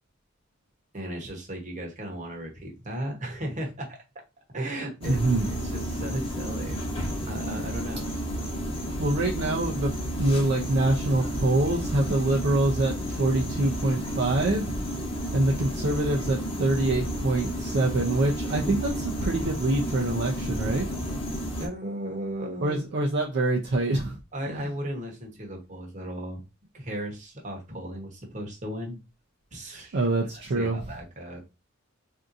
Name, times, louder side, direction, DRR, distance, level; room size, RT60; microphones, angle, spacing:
voice 1, 0.9-4.0 4.5-6.8 7.2-8.1 21.6-22.8 24.3-26.4 26.7-29.0 29.5-30.1 30.5-31.4, right 1 dB, 35° right, 1 dB, 1.0 m, -36 dB
sound 1, 5.0-21.7, equal, 25° left, 1.0 m, -32 dB
voice 2, 5.0-5.4 9.0-9.9 10.2-15.0 15.3-20.9 22.6-24.2 24.5-24.6 29.9-30.8, right 2 dB, 55° right, -1 dB, 0.5 m, -25 dB
3.6 x 2.7 x 2.5 m, 0.26 s
head